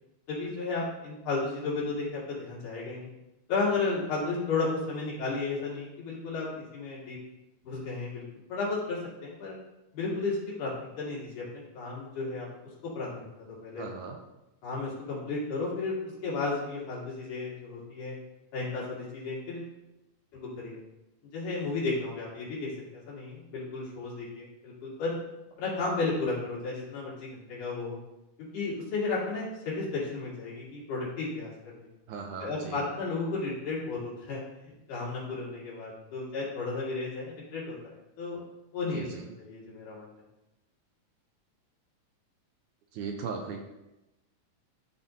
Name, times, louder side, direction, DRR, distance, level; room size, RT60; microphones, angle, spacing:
voice 1, 0.3-3.1 3.5-7.2 7.6-8.2 8.5-9.6 9.9-10.7 11.0-12.5 12.9-13.3 13.6-13.8 14.6-18.1 18.5-19.7 20.3-20.8 21.3-22.7 23.1-25.2 25.6-28.0 28.5-31.5 31.8-31.9 32.4-34.4 34.9-38.4 38.7-40.1, left 3 dB, 65° left, -7 dB, 3.5 m, -33 dB
voice 2, 13.8-14.2 32.1-32.8 38.9-39.3 42.9-43.6, right 5 dB, 80° right, 3 dB, 1.9 m, -38 dB
12.5 x 4.3 x 2.7 m, 0.95 s
omnidirectional pair, 3.8 m